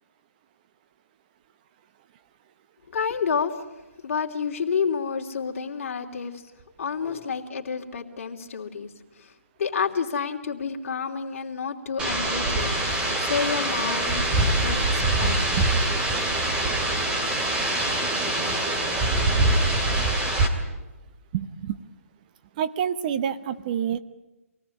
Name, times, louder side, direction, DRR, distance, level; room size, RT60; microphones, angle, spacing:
voice 1, 2.9-3.5 4.0-6.4 6.8-8.9 9.2-9.3 9.6-14.3 14.6-15.5, left 6 dB, 55° left, 2 dB, 3.0 m, -29 dB
sound 1, 12.0-20.5, right 2 dB, 10° right, 2.8 m, -24 dB
voice 2, 15.3-15.6 21.3-21.8 22.6-24.0, right 9 dB, 30° right, 12 dB, 1.0 m, -28 dB
26.0 x 18.5 x 9.8 m, 1.1 s
hypercardioid pair, 155°, 8 cm